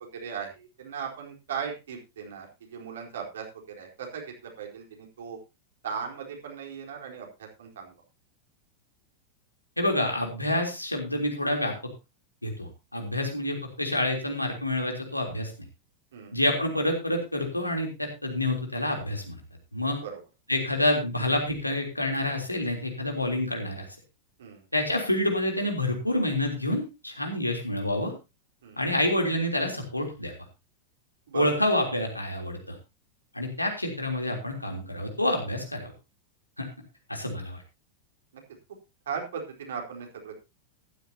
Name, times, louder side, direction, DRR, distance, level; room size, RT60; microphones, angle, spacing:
voice 1, 0.0-3.5 3.8-5.4 5.8-7.9 13.2-13.3 16.1-16.4 20.0-20.2 24.4-24.6 28.6-28.8 31.3-31.4 39.1-40.4, right 6 dB, 60° right, 1 dB, 4.3 m, -38 dB
voice 2, 9.8-11.7 12.4-15.5 16.3-19.4 19.7-20.0 20.5-23.9 24.7-28.1 28.8-30.3 31.3-32.8 33.3-35.9 36.6-36.7 37.1-37.6, left 1 dB, 85° left, 2 dB, 3.5 m, -28 dB
14.5 x 13.0 x 2.9 m, 0.27 s
figure-of-eight pair, 90°, 0 cm